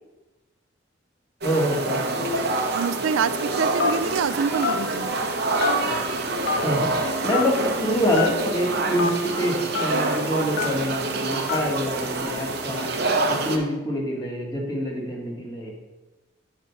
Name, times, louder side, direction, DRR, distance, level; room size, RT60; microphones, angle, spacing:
voice 1, 1.4-2.4 5.9-6.0 6.6-15.7, equal, 20° left, -2 dB, 1.5 m, -26 dB
sound 1, 1.4-13.6, right 2 dB, 55° right, 0.9 m, -26 dB
voice 2, 2.7-3.3 3.6-5.1, right 6 dB, 80° right, 13 dB, 0.4 m, -25 dB
Telephone, 3.8-4.1 4.6-4.8 5.6-6.0 6.5-6.6 7.3-7.5 8.1-8.3 9.0-9.1 9.7-9.9 10.6-10.8 11.5-11.7, left 6 dB, 75° left, 0.6 m, -25 dB
7.5 x 4.4 x 5.6 m, 1.1 s
head